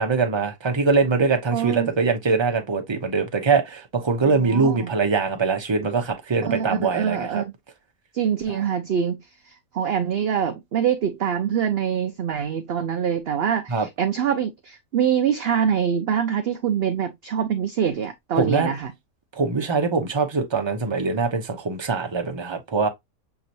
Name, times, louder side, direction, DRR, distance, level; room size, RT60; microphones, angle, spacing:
voice 1, 0.0-7.4 8.5-8.6 13.7-13.9 18.4-18.7 19.4-22.9, right 4 dB, 25° right, 0.8 m, -23 dB
voice 2, 1.5-1.9 4.4-4.9 6.4-7.5 8.1-9.2 9.7-18.9, right 8 dB, 60° right, 0.7 m, -24 dB
6.8 x 3.0 x 2.6 m
omnidirectional pair, 1.5 m